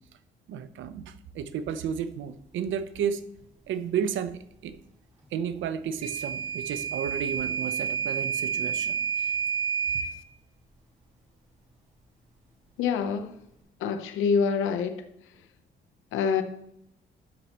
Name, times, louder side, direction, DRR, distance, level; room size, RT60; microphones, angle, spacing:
voice 1, 0.5-3.2 3.7-4.8 5.3-9.3, right 8 dB, 75° right, 12 dB, 0.8 m, -32 dB
Microwave oven / Alarm, 6.0-10.1, right 7 dB, 35° right, 3.2 m, -29 dB
voice 2, 12.8-13.3 13.8-15.0 16.1-16.4, left 6 dB, 90° left, 8 dB, 0.8 m, -26 dB
11.5 x 6.6 x 3.0 m, 0.76 s
cardioid pair, 90°, 20 cm